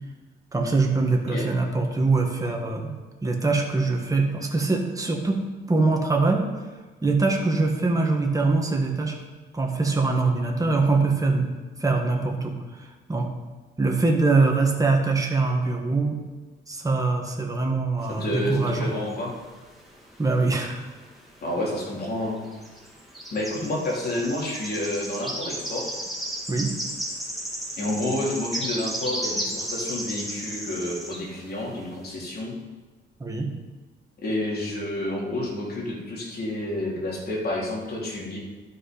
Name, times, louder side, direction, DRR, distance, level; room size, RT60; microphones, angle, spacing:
voice 1, 0.5-2.9 3.2-5.4 5.7-6.4 7.0-9.2 9.5-11.5 11.8-13.3 13.8-16.2 16.7-18.9 20.2-20.8 26.5-26.7 33.2-33.5, right 3 dB, 15° right, 1 dB, 1.7 m, -23 dB
voice 2, 18.1-19.3 21.4-22.4 23.3-25.9 27.8-32.5 34.2-38.4, left 1 dB, 50° left, -4 dB, 3.2 m, -29 dB
sound 1, 18.1-19.7 20.0-21.3 21.5-21.7 22.4-31.2, right 1 dB, ahead, 2.4 m, -33 dB
12.5 x 5.7 x 5.1 m, 1.3 s
cardioid pair, 100°, 20 cm